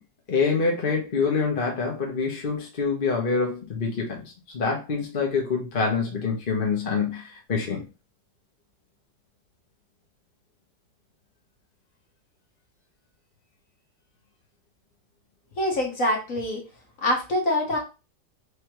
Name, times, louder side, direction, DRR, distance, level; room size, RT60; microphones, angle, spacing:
voice 1, 0.3-7.8, left 4 dB, 35° left, 1.0 m, -26 dB
voice 2, 15.6-16.6 17.0-17.8, left 1 dB, 50° left, 1.4 m, -24 dB
3.5 x 3.4 x 4.5 m
omnidirectional pair, 2.0 m